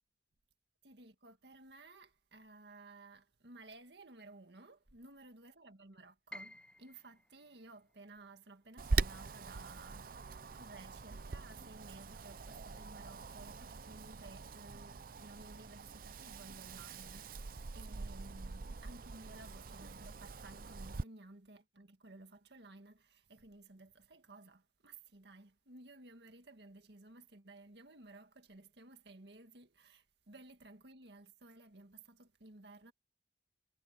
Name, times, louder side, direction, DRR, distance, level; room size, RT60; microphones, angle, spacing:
voice 1, 0.8-32.9, right 2 dB, 70° right, 1.9 m, -56 dB
Piano, 6.3-12.2 12.6-13.7 14.1-14.2 14.9-15.3, left 1 dB, 5° left, 0.4 m, -58 dB
Wind, 8.8-21.0, right 4 dB, 55° right, 0.6 m, -42 dB
head